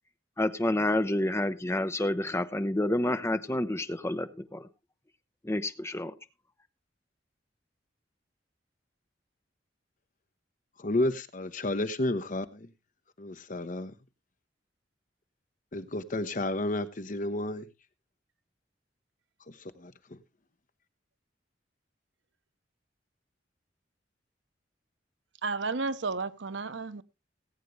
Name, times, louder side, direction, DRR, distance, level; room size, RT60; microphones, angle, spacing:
voice 1, 0.4-4.7 5.4-6.1, left 1 dB, 15° left, 0.8 m, -29 dB
voice 2, 10.8-12.7 13.2-13.9 15.7-17.7 19.5-20.2, left 1 dB, 45° left, 1.0 m, -32 dB
voice 3, 25.4-27.0, right 4 dB, 75° right, 0.8 m, -32 dB
19.0 x 8.4 x 3.2 m
head